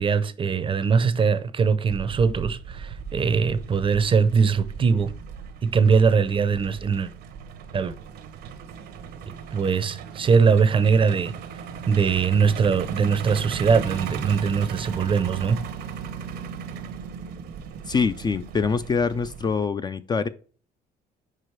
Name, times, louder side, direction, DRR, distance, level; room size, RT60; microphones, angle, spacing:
voice 1, 0.0-5.1 5.6-7.1 7.7-7.9 9.5-11.4 11.9-15.6, right 5 dB, 30° right, 0.6 m, -21 dB
Truck, 1.9-19.7, right 7 dB, 70° right, 0.8 m, -37 dB
voice 2, 17.9-20.3, left 5 dB, 25° left, 0.3 m, -24 dB
4.9 x 4.8 x 4.5 m
cardioid pair, 110°, 17 cm